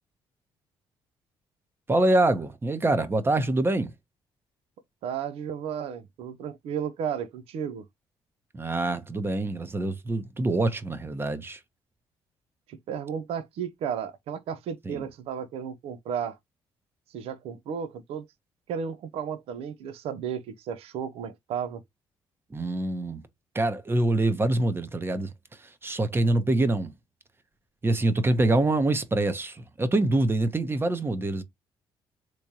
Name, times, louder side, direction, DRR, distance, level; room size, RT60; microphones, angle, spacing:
voice 1, 1.9-3.9 8.5-11.6 14.9-15.0 22.5-23.2 23.5-25.3 25.6-26.9 27.8-31.4, right 2 dB, 25° right, 0.9 m, -25 dB
voice 2, 5.0-7.8 12.7-16.4 17.1-18.3 18.7-21.8, right 8 dB, 80° right, 0.6 m, -33 dB
3.6 x 3.1 x 2.7 m
cardioid pair, 85°, 10 cm